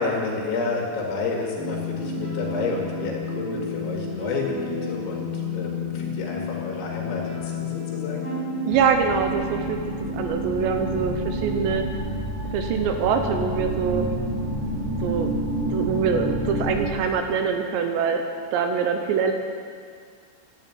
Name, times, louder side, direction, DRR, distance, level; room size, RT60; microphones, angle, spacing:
voice 1, 0.0-8.2, left 3 dB, 75° left, -2 dB, 4.5 m, -30 dB
sound 1, 1.6-11.9, left 3 dB, 5° right, 1.1 m, -31 dB
sound 2, 8.7-16.9, right 1 dB, 35° right, 5.0 m, -29 dB
voice 2, 8.7-9.8 10.1-11.9 12.5-14.1 15.0-15.3 15.7-18.2 18.5-19.3, right 6 dB, 75° right, 5 dB, 2.9 m, -24 dB
12.0 x 11.0 x 8.5 m, 2.1 s
omnidirectional pair, 5.5 m